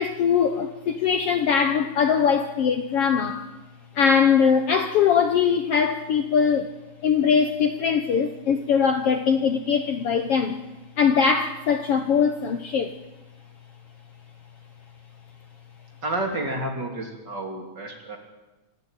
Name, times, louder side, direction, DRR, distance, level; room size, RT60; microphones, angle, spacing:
voice 1, 0.0-3.5 3.9-6.7 7.0-10.6 11.0-12.9, left 6 dB, 65° left, 1.7 m, -21 dB
voice 2, 16.0-18.2, right 1 dB, 35° right, 3.4 m, -30 dB
27.0 x 12.5 x 9.1 m
omnidirectional pair, 3.6 m